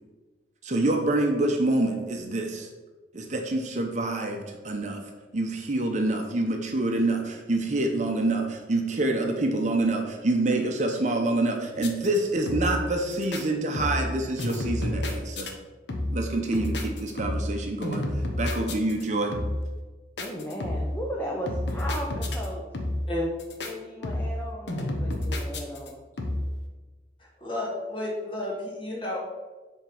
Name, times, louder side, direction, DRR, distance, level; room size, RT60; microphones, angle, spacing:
voice 1, 0.6-2.7 3.1-5.0 5.3-15.5 16.1-18.0 18.4-19.3, right 2 dB, 40° right, 0.8 m, -26 dB
sound 1, 11.8-12.2 12.5-12.9 13.1-13.4 13.7-14.1 14.4-15.5 15.9-16.3 16.5-17.6 17.8-19.0 19.3-19.7 20.2-21.0 21.5-22.5 22.7-23.1 23.4-23.7 24.0-24.4 24.7-25.9 26.2-26.6, left 1 dB, 75° left, 1.0 m, -30 dB
voice 2, 20.2-22.6 23.6-26.0, equal, 10° left, 0.8 m, -35 dB
voice 3, 27.2-29.2, left 1 dB, 30° left, 1.8 m, -31 dB
7.2 x 3.6 x 5.9 m
head